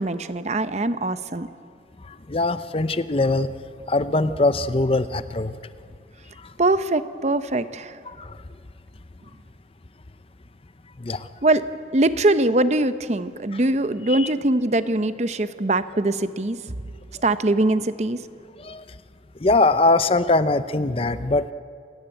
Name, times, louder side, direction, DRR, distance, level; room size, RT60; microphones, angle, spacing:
voice 1, 0.0-1.5 6.6-8.0 11.4-11.7 11.9-16.6 17.2-18.2, right 2 dB, 40° right, 12 dB, 0.8 m, -22 dB
voice 2, 2.0-3.5 3.9-5.5 6.4-6.5 8.1-8.4 11.0-11.3 14.1-14.3 18.6-18.8 19.4-21.5, left 2 dB, 30° left, 13 dB, 0.6 m, -22 dB
28.0 x 17.0 x 9.0 m, 2.3 s
head